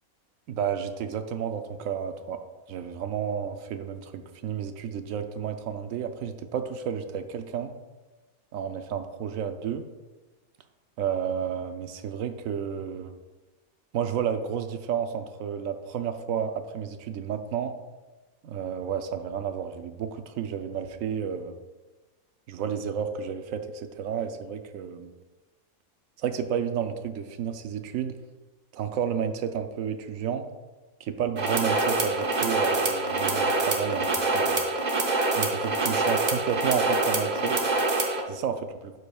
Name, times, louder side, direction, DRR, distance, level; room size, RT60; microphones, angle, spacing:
voice 1, 0.5-2.4 2.7-7.7 8.5-9.8 11.0-13.1 13.9-17.7 18.4-21.6 22.5-25.1 26.2-28.2 28.7-30.4 31.0-34.7 35.4-37.6 38.3-38.9, right 8 dB, 70° right, 8 dB, 0.9 m, -31 dB
sound 1, 31.4-38.2, right 2 dB, 40° right, 0.7 m, -25 dB
12.0 x 4.7 x 2.3 m, 1.2 s
omnidirectional pair, 1.5 m